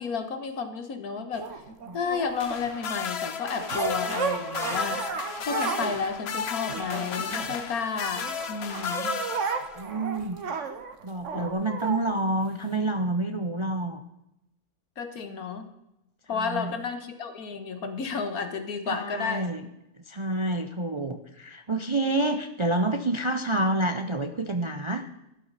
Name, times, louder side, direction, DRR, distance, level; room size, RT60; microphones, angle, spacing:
voice 1, 0.0-1.6 1.9-5.0 5.4-9.2 15.0-15.7 16.3-19.5, left 5 dB, 75° left, 8 dB, 1.8 m, -32 dB
sound 1, 1.3-2.7 3.6-6.0 6.3-7.8 8.2-12.0 12.7-12.8, right 6 dB, 55° right, 1.4 m, -33 dB
sound 2, 2.4-10.0 11.3-11.5, left 6 dB, 50° left, 1.0 m, -34 dB
voice 2, 9.8-10.4 11.0-14.0 16.3-16.7 18.9-19.7 20.1-25.1, right 2 dB, 35° right, 7 dB, 0.4 m, -28 dB
12.5 x 11.5 x 4.1 m, 0.89 s
omnidirectional pair, 1.6 m